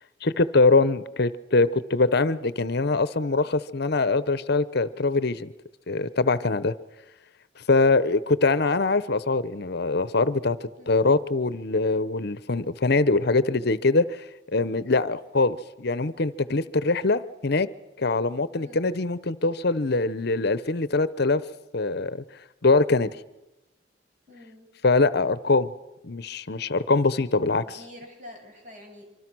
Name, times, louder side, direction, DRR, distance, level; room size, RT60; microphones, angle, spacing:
voice 1, 0.2-5.5 5.9-6.7 7.6-17.7 18.0-21.4 21.7-22.2 22.6-23.1 24.8-25.7 26.0-27.8, left 3 dB, 55° left, 0.9 m, -23 dB
voice 2, 24.3-24.7 27.7-29.0, left 1 dB, 40° right, 7.2 m, -47 dB
26.0 x 25.0 x 6.2 m
head